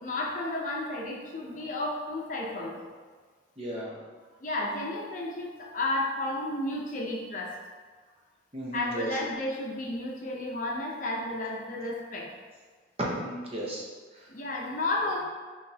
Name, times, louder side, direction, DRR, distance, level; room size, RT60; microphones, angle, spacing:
voice 1, 0.0-2.9 4.4-7.5 8.7-12.3 14.3-15.2, left 2 dB, 45° left, -2 dB, 0.6 m, -32 dB
voice 2, 3.6-4.0 8.5-9.1 13.0-13.8 14.1-14.3, right 1 dB, 30° right, -5 dB, 0.9 m, -34 dB
5.8 x 3.1 x 2.8 m, 1.5 s
head